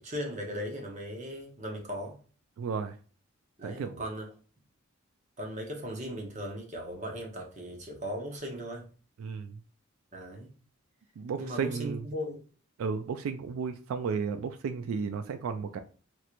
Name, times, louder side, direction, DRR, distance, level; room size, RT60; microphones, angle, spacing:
voice 1, 0.0-2.2 3.6-4.3 5.4-8.9 10.1-10.5 11.4-12.4, equal, 35° right, 0.8 m, -38 dB
voice 2, 2.6-2.9 3.6-4.0 9.2-9.6 11.2-12.1 12.8-15.8, right 5 dB, 80° right, 0.3 m, -33 dB
3.1 x 2.9 x 2.4 m
head